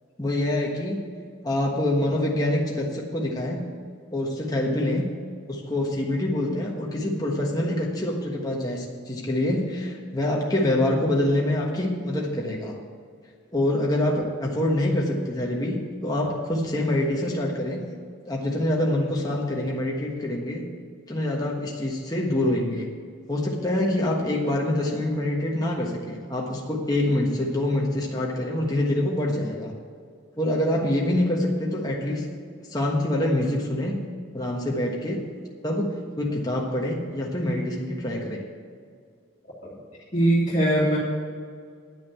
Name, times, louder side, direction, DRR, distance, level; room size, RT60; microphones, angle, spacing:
voice 1, 0.2-1.1 1.4-3.6 4.1-5.0 5.5-12.8 13.5-17.8 18.3-20.6 21.1-22.9 23.3-29.7 30.4-32.3 32.7-34.1 34.3-35.2 35.6-35.9 36.2-38.4, left 1 dB, 20° left, -2 dB, 1.3 m, -25 dB
voice 2, 40.1-41.0, right 1 dB, 40° left, -8 dB, 2.4 m, -21 dB
10.5 x 6.2 x 8.6 m, 2.1 s
head